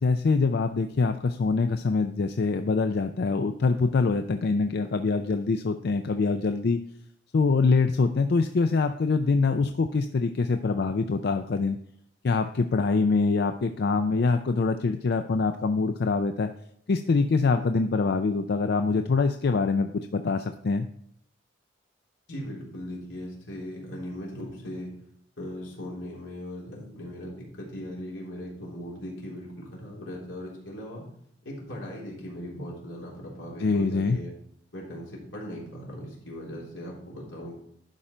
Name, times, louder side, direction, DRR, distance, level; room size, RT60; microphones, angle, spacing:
voice 1, 0.0-6.8 7.3-11.8 12.2-16.5 16.9-20.9 33.6-34.2, left 4 dB, 55° left, 8 dB, 0.4 m, -24 dB
voice 2, 22.3-24.9 25.4-31.0 31.4-34.3 34.7-37.6, equal, 85° left, -3 dB, 3.5 m, -39 dB
11.5 x 5.1 x 4.3 m, 0.69 s
head